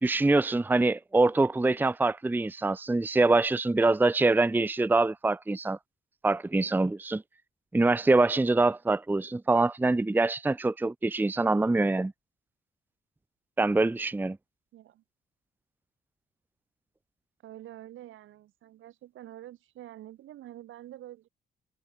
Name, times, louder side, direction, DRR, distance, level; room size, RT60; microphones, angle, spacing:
voice 1, 0.0-5.8 6.2-7.2 7.7-12.1 13.6-14.4, right 2 dB, 10° right, 0.6 m, -24 dB
voice 2, 14.7-15.0 17.4-21.3, right 13 dB, 80° right, 6.1 m, -47 dB
cardioid pair, 90°, 20 cm